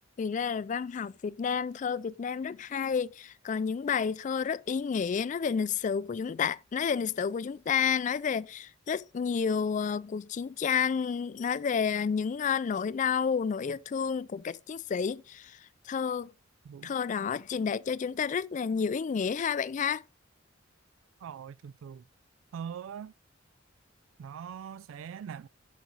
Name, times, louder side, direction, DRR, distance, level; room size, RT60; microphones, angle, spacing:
voice 1, 0.2-15.6 15.9-16.3 16.8-20.0, left 6 dB, 40° left, 0.3 m, -30 dB
voice 2, 21.2-22.0 22.5-23.1 24.2-25.5, right 7 dB, 85° right, 0.3 m, -42 dB
8.0 x 6.0 x 3.9 m
head